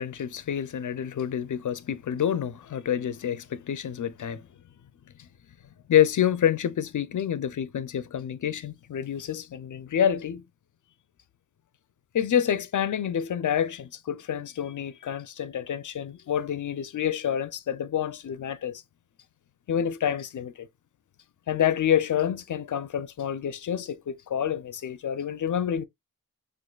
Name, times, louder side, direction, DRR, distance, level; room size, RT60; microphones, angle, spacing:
voice 1, 0.0-4.4 5.9-10.4 12.1-18.8 19.7-20.7 21.5-25.9, left 9 dB, 65° left, 0.5 m, -28 dB
6.2 x 2.5 x 2.2 m
wide cardioid pair, 105°, 33 cm